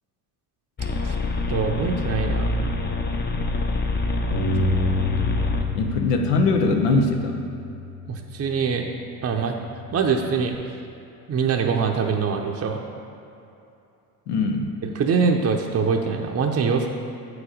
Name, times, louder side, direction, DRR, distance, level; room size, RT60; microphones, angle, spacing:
sound 1, 0.8-5.9, left 2 dB, 20° left, 0.6 m, -26 dB
voice 1, 1.5-2.6 8.1-8.9 9.2-9.5 9.9-10.5 11.3-12.8 14.8-16.9, right 5 dB, 35° right, 2 dB, 0.7 m, -23 dB
Bass guitar, 4.3-8.8 9.4-10.5, left 3 dB, 55° left, 1.8 m, -30 dB
voice 2, 5.7-7.5 14.3-14.7, left 3 dB, 85° left, 4 dB, 0.8 m, -21 dB
7.9 x 4.9 x 5.0 m, 2.7 s
hypercardioid pair, 60°, 46 cm